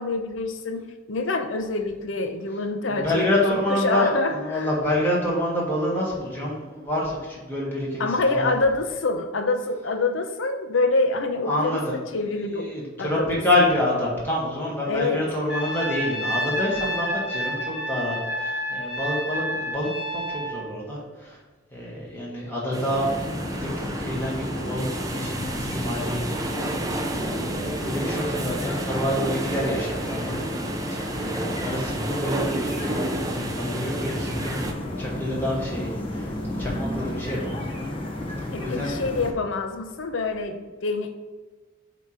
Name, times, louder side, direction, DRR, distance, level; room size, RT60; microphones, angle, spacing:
voice 1, 0.0-4.7 8.0-12.7 13.0-13.2 14.8-15.2 38.5-41.1, left 3 dB, 75° left, 6 dB, 0.7 m, -26 dB
voice 2, 2.9-8.6 11.4-21.4 21.7-23.1 23.4-34.7 35.0-37.6 38.6-38.9, left 1 dB, 10° left, -5 dB, 1.5 m, -28 dB
Trumpet, 15.5-20.6, equal, 55° left, 1.5 m, -29 dB
sound 1, 22.7-34.7, right 2 dB, 20° right, 0.5 m, -32 dB
sound 2, 22.9-39.3, left 1 dB, 25° left, 0.8 m, -32 dB
8.0 x 3.0 x 5.0 m, 1.3 s
head